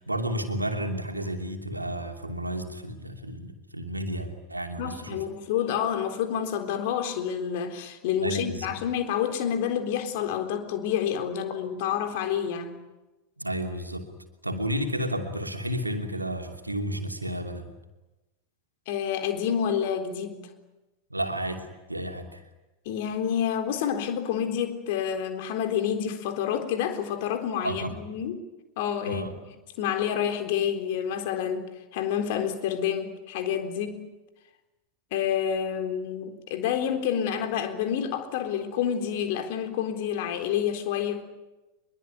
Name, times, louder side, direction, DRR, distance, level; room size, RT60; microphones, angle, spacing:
voice 1, 0.0-5.2 8.2-8.8 13.4-14.1 14.4-17.7 21.1-22.4 27.6-27.9 29.0-29.3, equal, 85° right, 2.8 m, -32 dB
voice 2, 4.8-12.8 18.9-20.5 22.9-28.4 28.8-29.4 29.8-31.6 31.9-34.1 35.1-41.2, left 9 dB, 50° left, 3.8 m, -28 dB
24.5 x 22.5 x 9.6 m
figure-of-eight pair, 90°, 0 cm